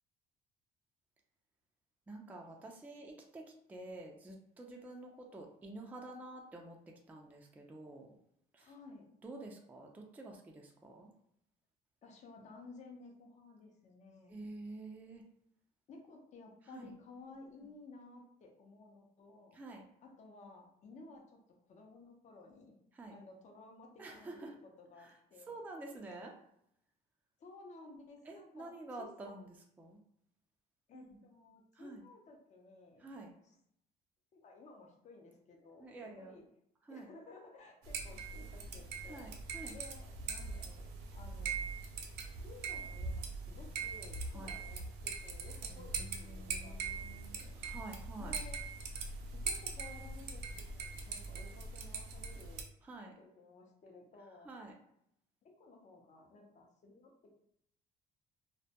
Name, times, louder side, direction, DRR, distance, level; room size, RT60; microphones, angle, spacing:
voice 1, 2.1-3.4 3.7-6.8 7.1-8.1 8.5-8.7 9.2-11.1 14.3-15.2 16.7-16.9 19.5-19.8 22.9-23.1 24.0-24.5 25.5-26.3 28.3-29.5 29.8-30.0 30.9-31.1 31.8-32.0 33.0-33.3 35.8-36.3 36.9-37.1 39.1-39.8 44.3-44.5 45.7-48.4 52.8-53.2 54.5-54.7, right 2 dB, 10° right, 1 dB, 0.3 m, -49 dB
voice 2, 8.6-9.1 12.0-14.4 15.9-19.6 20.0-21.4 21.7-22.8 23.1-25.6 27.4-29.3 30.9-33.6 34.3-36.4 36.9-41.7 42.4-47.6 48.2-48.6 49.3-52.6 53.2-54.5 55.6-57.4, left 3 dB, 45° left, 1 dB, 0.6 m, -56 dB
sound 1, 37.8-52.6, right 4 dB, 80° right, 0.5 m, -42 dB
2.1 x 2.1 x 2.7 m, 0.74 s
cardioid pair, 110°, 17 cm